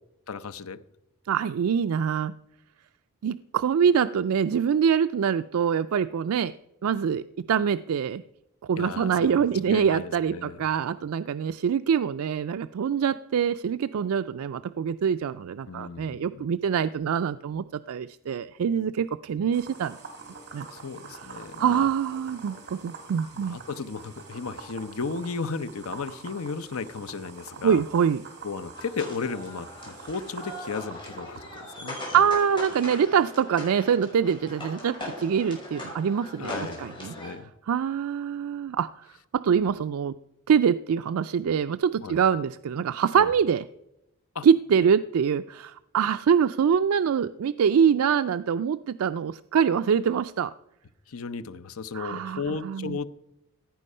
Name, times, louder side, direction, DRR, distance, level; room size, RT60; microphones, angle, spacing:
voice 1, 0.3-0.8 8.8-10.6 15.7-16.5 20.7-21.9 23.3-27.8 28.4-32.2 36.4-37.5 42.0-42.2 43.2-43.3 44.3-44.5 51.1-53.1, left 4 dB, 80° left, 14 dB, 0.7 m, -35 dB
voice 2, 1.3-2.3 3.2-6.5 6.8-8.2 8.6-20.0 20.5-20.7 21.6-23.6 27.6-28.2 32.1-36.5 36.8-37.1 37.7-39.1 39.3-40.2 40.5-43.6 44.4-50.5 51.9-53.0, right 7 dB, 85° right, 12 dB, 0.4 m, -24 dB
sound 1, 19.5-33.0, right 4 dB, 50° right, 2.9 m, -45 dB
sound 2, 28.7-37.3, left 1 dB, 25° left, 6.2 m, -40 dB
16.0 x 9.1 x 5.5 m, 0.87 s
head